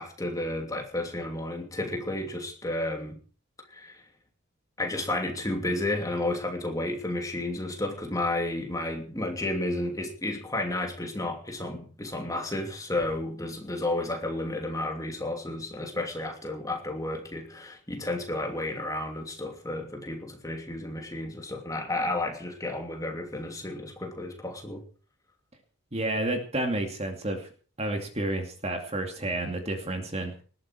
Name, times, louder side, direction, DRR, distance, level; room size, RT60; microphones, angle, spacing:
voice 1, 0.0-3.2 3.7-4.0 4.8-24.8, left 2 dB, 15° left, 3 dB, 2.8 m, -32 dB
voice 2, 25.9-27.5 27.8-30.4, right 1 dB, 30° right, 5 dB, 2.5 m, -30 dB
20.0 x 13.5 x 4.7 m, 0.40 s
head